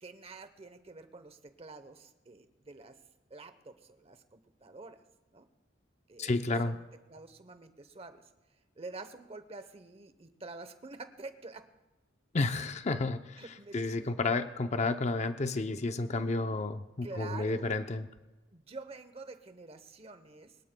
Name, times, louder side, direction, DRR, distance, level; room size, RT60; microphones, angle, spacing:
voice 1, 0.0-3.0 3.3-5.0 5.3-5.5 6.1-6.4 6.6-8.3 8.8-11.7 13.4-14.4 17.0-17.7 18.5-20.6, right 3 dB, 30° right, 10 dB, 0.9 m, -48 dB
voice 2, 6.2-6.8 12.3-13.4 13.7-18.1, left 3 dB, 40° left, 8 dB, 0.6 m, -31 dB
23.0 x 20.5 x 2.3 m, 1.1 s
head